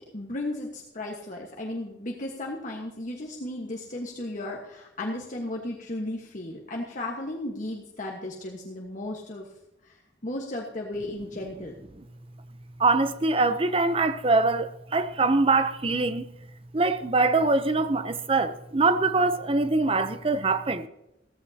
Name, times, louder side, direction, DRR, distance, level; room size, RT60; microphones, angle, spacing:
voice 1, 0.1-9.5 9.8-9.9 10.2-11.7, left 1 dB, 45° left, 1.4 m, -35 dB
voice 2, 12.8-16.3 16.7-20.9, right 3 dB, 30° right, 0.7 m, -23 dB
15.5 x 14.5 x 2.8 m
head